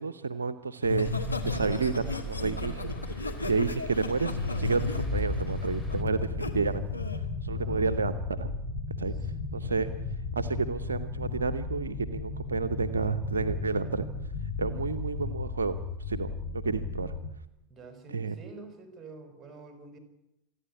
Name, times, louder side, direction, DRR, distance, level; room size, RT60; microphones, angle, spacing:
voice 1, 0.0-6.8 7.4-8.5 9.0-9.9 10.3-14.1 14.6-15.8 16.1-17.2 18.1-18.4, right 4 dB, 75° right, 13 dB, 0.8 m, -31 dB
Laughter, 0.8-6.5 6.9-7.2, left 3 dB, 85° left, 1.7 m, -34 dB
sound 1, 1.0-6.0, equal, 10° left, 2.7 m, -38 dB
sound 2, 4.1-17.3, left 4 dB, 30° left, 6.5 m, -35 dB
voice 2, 7.5-8.0 9.6-9.9 17.7-20.0, right 3 dB, 20° right, 6 dB, 4.9 m, -48 dB
27.0 x 10.0 x 9.9 m, 0.86 s
figure-of-eight pair, 85°, 0 cm